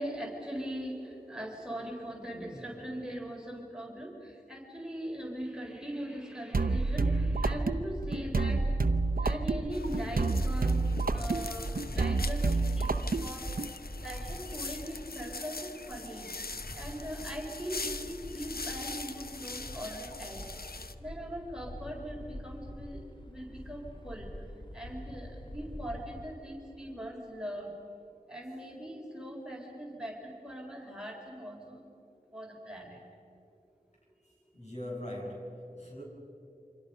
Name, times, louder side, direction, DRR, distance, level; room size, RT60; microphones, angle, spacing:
voice 1, 0.0-8.7 9.2-13.5 14.0-16.3 16.7-20.5 20.8-27.8 28.3-31.8 32.3-33.0, equal, 5° right, 0 dB, 4.1 m, -40 dB
sound 1, 6.5-13.7, right 3 dB, 70° right, 0.8 m, -29 dB
sound 2, 6.8-26.3, left 1 dB, 30° left, 1.8 m, -43 dB
sound 3, 9.7-20.9, left 3 dB, 85° left, 0.9 m, -43 dB
voice 2, 34.5-36.0, left 1 dB, 45° left, -3 dB, 7.3 m, -40 dB
29.0 x 25.5 x 5.5 m, 2.7 s
wide cardioid pair, 40°, 15 cm